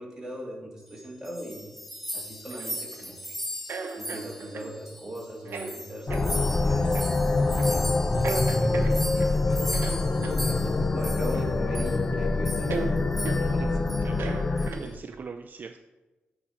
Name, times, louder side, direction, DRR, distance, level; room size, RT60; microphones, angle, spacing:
voice 1, 0.0-1.8 2.1-3.4 3.9-7.0 7.5-9.7 10.4-14.1 14.8-15.0, right 1 dB, 15° right, -4 dB, 2.5 m, -40 dB
sound 1, 1.0-5.2 5.5-11.4 11.7-12.0 12.4-12.8 13.1-13.6 13.9-14.1 14.6-14.9, left 1 dB, 5° left, 0.9 m, -37 dB
sound 2, 2.5-3.1 3.7-4.7 5.4-5.7 6.1-6.3 6.9-7.1 7.6-7.8 8.2-9.3 9.7-10.4 11.3-11.9 12.1-12.2 12.7-12.9 13.2-13.4 14.0-15.2, right 4 dB, 75° right, 0.8 m, -36 dB
sound 3, 6.1-14.7, left 3 dB, 30° left, 0.5 m, -25 dB
voice 2, 13.4-14.2 14.5-15.8, right 5 dB, 50° right, 7 dB, 0.4 m, -43 dB
8.6 x 4.2 x 5.8 m, 1.1 s
cardioid pair, 100°, 4 cm